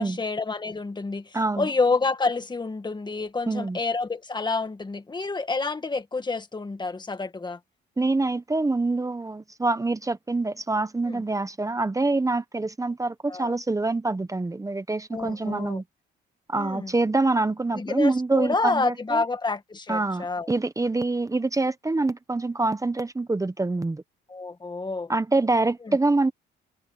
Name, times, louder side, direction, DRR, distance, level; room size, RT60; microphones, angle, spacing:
voice 1, 0.0-7.6 11.1-11.2 13.3-13.5 15.1-15.8 16.5-16.9 17.7-20.5 24.3-25.1 25.8-26.0, left 3 dB, 20° left, 1.9 m, -28 dB
voice 2, 1.3-1.7 3.5-3.8 8.0-15.8 16.5-19.2 19.9-24.0 25.1-26.3, right 2 dB, 15° right, 1.0 m, -25 dB
cardioid pair, 90°, 20 cm